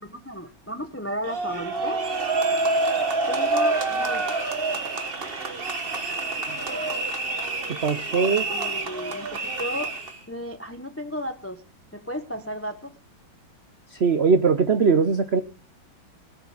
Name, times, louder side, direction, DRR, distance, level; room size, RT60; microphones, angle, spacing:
voice 1, 0.1-2.0 3.3-4.2 8.5-10.0 10.3-11.6 11.9-12.9, equal, 20° left, 8 dB, 0.4 m, -34 dB
sound 1, 1.3-10.2, right 3 dB, 30° right, 1.4 m, -27 dB
voice 2, 7.8-8.5 14.0-15.4, right 5 dB, 70° right, 10 dB, 0.6 m, -20 dB
18.0 x 6.8 x 7.3 m, 0.39 s
omnidirectional pair, 2.2 m